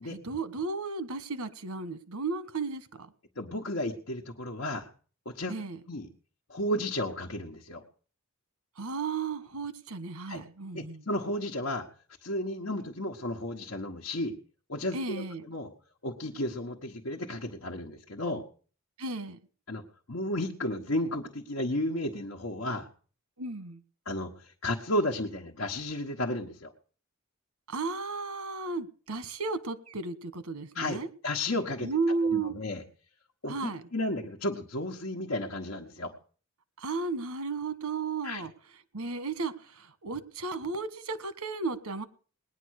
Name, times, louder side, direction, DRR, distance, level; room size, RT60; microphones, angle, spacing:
voice 1, 0.0-3.1 5.5-5.8 8.8-11.0 14.9-15.5 19.0-19.4 23.4-23.8 27.7-31.1 31.8-32.6 33.5-33.8 36.8-38.5 38.9-42.0, right 4 dB, 90° right, 1.4 m, -34 dB
voice 2, 3.4-4.9 5.2-5.5 5.9-6.1 6.5-7.8 10.3-10.4 10.7-11.9 12.2-14.3 14.7-15.7 16.0-18.4 19.7-19.8 20.1-22.9 24.0-26.7 30.7-31.9 32.3-32.8 33.4-36.1 38.2-38.4, left 1 dB, 60° left, 1.4 m, -33 dB
19.5 x 10.0 x 6.5 m
head